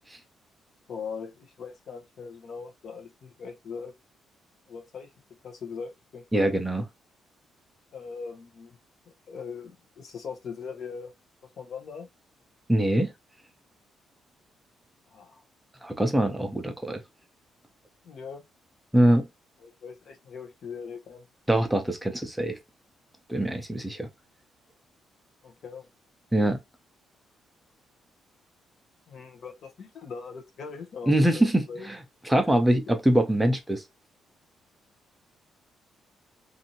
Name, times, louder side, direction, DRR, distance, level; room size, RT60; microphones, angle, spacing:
voice 1, 0.9-3.9 4.7-5.1 5.4-6.5 7.9-8.8 9.3-11.1 11.6-12.1 15.1-15.4 18.0-18.4 19.6-21.2 25.4-25.9 29.1-31.9 32.3-32.5 32.9-33.0, left 5 dB, 65° left, 0.8 m, -40 dB
voice 2, 6.3-6.8 12.7-13.1 15.8-17.0 18.9-19.3 21.5-22.6 23.3-24.1 26.3-26.6 31.1-32.0 32.2-33.8, right 1 dB, 10° right, 0.7 m, -23 dB
2.7 x 2.6 x 2.8 m
cardioid pair, 90°, 0 cm